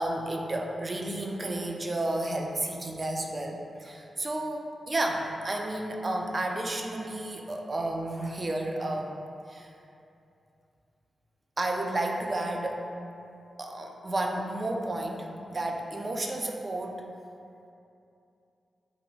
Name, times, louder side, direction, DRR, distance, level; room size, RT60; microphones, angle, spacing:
voice 1, 0.0-9.2 9.5-9.7 11.6-12.9 13.6-17.0, right 1 dB, 45° right, 1 dB, 0.3 m, -32 dB
2.8 x 2.3 x 2.7 m, 2.7 s
supercardioid pair, 40°, 0 cm